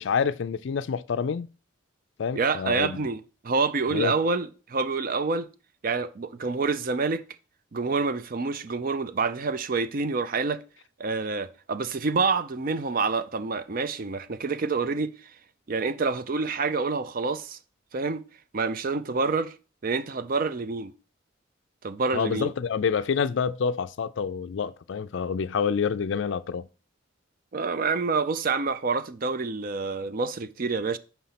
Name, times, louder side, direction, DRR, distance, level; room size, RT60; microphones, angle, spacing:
voice 1, 0.0-1.5 2.2-3.0 3.9-4.2 22.1-26.7, left 6 dB, 60° left, 0.4 m, -27 dB
voice 2, 2.3-5.5 5.8-7.2 7.7-10.6 11.0-15.1 15.7-17.6 17.9-18.2 18.5-19.6 19.8-20.9 21.8-22.5 27.5-31.0, right 4 dB, 45° right, 0.4 m, -27 dB
5.7 x 4.2 x 5.7 m
head